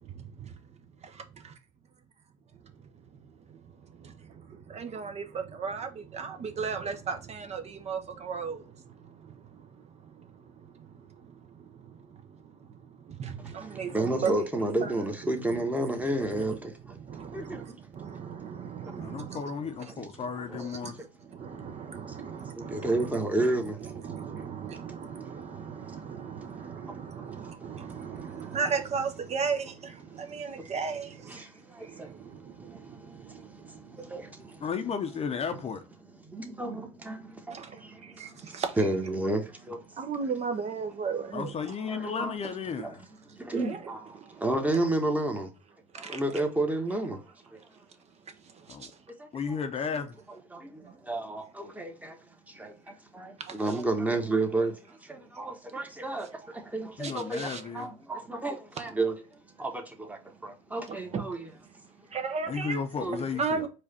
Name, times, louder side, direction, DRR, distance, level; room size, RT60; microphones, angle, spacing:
voice 1, 0.0-0.5 1.0-1.2 3.5-3.6 3.9-12.7 13.0-14.3 14.8-14.9 15.5-15.7 16.1-16.6 17.0-19.4 20.0-20.1 20.5-23.2 23.8-31.5 31.8-34.0 37.5-37.8 38.0-38.8 40.0-41.5 43.5-43.8 44.1-44.5 45.9-46.2 48.4-48.9 50.8-51.0 53.4-53.7 57.0-57.6 60.9-61.2 62.1-62.8 63.4-63.7, right 5 dB, 35° right, 0.9 m, -36 dB
voice 2, 13.4-17.0 17.3-17.9 18.9-19.0 19.9-20.0 20.3-21.0 21.4-21.5 21.9-23.9 24.3-28.6 30.1-30.7 31.3-34.7 36.2-40.4 41.0-41.1 41.8-42.3 42.8-43.0 43.3-45.5 45.9-47.8 49.2-49.3 49.9-50.0 50.5-61.5 61.9-62.1 63.0-63.2, right 2 dB, 10° right, 1.2 m, -33 dB
voice 3, 19.0-21.0 34.6-35.8 41.3-43.0 48.7-48.9 49.3-50.2 57.0-57.9 62.5-63.7, left 6 dB, 35° left, 0.7 m, -34 dB
4.8 x 2.5 x 4.2 m
hypercardioid pair, 85°, 18 cm